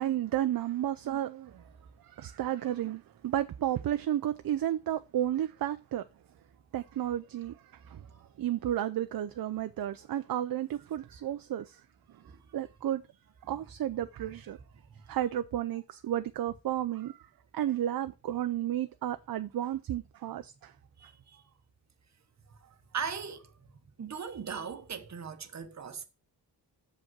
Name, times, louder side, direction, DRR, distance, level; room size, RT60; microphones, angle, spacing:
voice 1, 0.0-1.6 2.0-6.0 6.7-7.6 7.9-8.0 8.4-11.8 12.5-13.0 13.5-14.6 15.1-17.2 17.5-20.7, right 11 dB, 55° right, 0.5 m, -32 dB
voice 2, 21.0-21.4 22.7-23.5 24.0-26.0, right 6 dB, 40° right, 1.0 m, -39 dB
7.1 x 5.3 x 5.9 m
wide cardioid pair, 175°, 42 cm